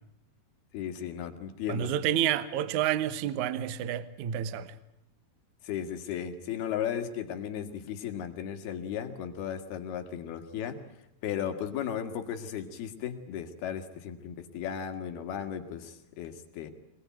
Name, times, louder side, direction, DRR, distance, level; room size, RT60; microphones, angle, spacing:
voice 1, 0.7-1.9 5.6-10.8 11.2-16.7, left 9 dB, 70° left, 3.6 m, -35 dB
voice 2, 1.7-4.8, right 11 dB, 70° right, 1.9 m, -29 dB
25.0 x 20.0 x 9.2 m
omnidirectional pair, 4.8 m